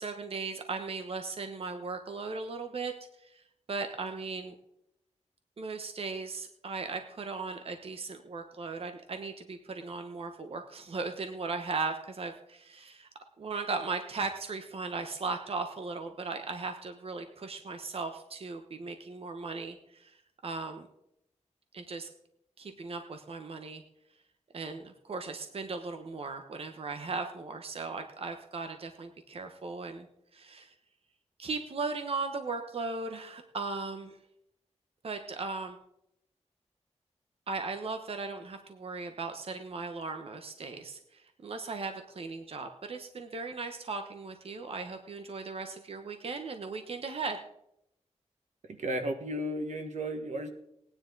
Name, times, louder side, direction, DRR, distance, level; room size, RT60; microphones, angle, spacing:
voice 1, 0.0-2.9 3.2-3.4 3.7-4.5 5.6-13.1 13.4-20.2 20.4-20.9 21.7-22.1 22.6-23.8 24.5-30.1 30.3-30.7 31.4-34.2 35.0-35.8 37.5-47.4, right 4 dB, 55° right, 6 dB, 1.0 m, -37 dB
voice 2, 48.8-50.5, right 1 dB, 85° right, 5 dB, 1.6 m, -33 dB
18.0 x 9.9 x 4.0 m, 0.78 s
wide cardioid pair, 145°, 12 cm